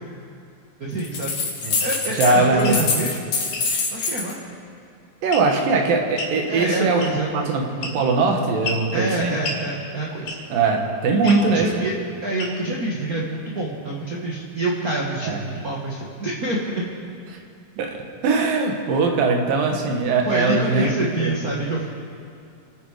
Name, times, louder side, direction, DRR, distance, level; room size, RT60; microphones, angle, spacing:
voice 1, 0.8-1.3 1.8-3.2 3.9-4.4 6.5-7.5 8.9-10.3 11.2-11.9 12.2-16.9 20.3-21.9, right 2 dB, 45° right, -3 dB, 1.2 m, -26 dB
sound 1, 1.0-2.3 2.6-4.3, left 4 dB, 55° left, 3.1 m, -25 dB
sound 2, 1.8-2.0 2.6-2.8 3.5-3.7 5.3-5.7 6.2-6.4 7.0-7.3 7.8-8.2 8.6-8.9 9.4-9.6 10.3-10.6 11.3-11.5 12.4-12.7, left 3 dB, 85° left, 4.0 m, -31 dB
voice 2, 2.1-2.9 5.2-9.3 10.5-11.9 15.2-15.4 17.3-17.4 17.8-18.0 18.2-20.9 21.2-21.4, right 3 dB, 85° right, 2 dB, 3.3 m, -21 dB
27.5 x 9.9 x 4.9 m, 2.4 s
omnidirectional pair, 3.9 m